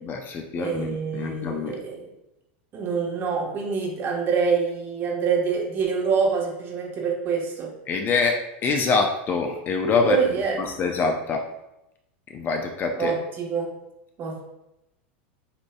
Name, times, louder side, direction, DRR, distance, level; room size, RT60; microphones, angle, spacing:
voice 1, 0.0-1.8 7.9-8.4 8.6-10.2 10.6-11.4 12.3-13.1, left 4 dB, 30° left, 4 dB, 0.5 m, -25 dB
voice 2, 0.5-2.1 2.7-7.7 10.0-10.6 13.0-13.7 14.2-14.4, right 5 dB, 35° right, -1 dB, 1.2 m, -26 dB
7.8 x 2.7 x 2.3 m, 0.88 s
supercardioid pair, 120°, 6 cm